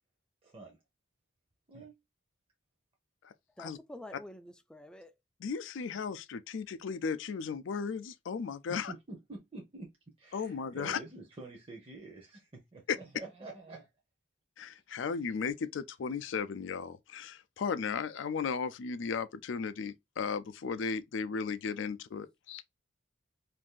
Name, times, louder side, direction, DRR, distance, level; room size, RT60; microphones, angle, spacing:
voice 1, 0.4-0.8 1.7-2.0 8.7-9.9 10.2-13.9, right 3 dB, 30° right, 0.7 m, -47 dB
voice 2, 3.6-5.2, left 1 dB, 5° left, 0.3 m, -48 dB
voice 3, 5.4-8.9 10.3-11.0 14.6-22.6, left 5 dB, 75° left, 0.4 m, -36 dB
2.6 x 2.5 x 3.6 m
head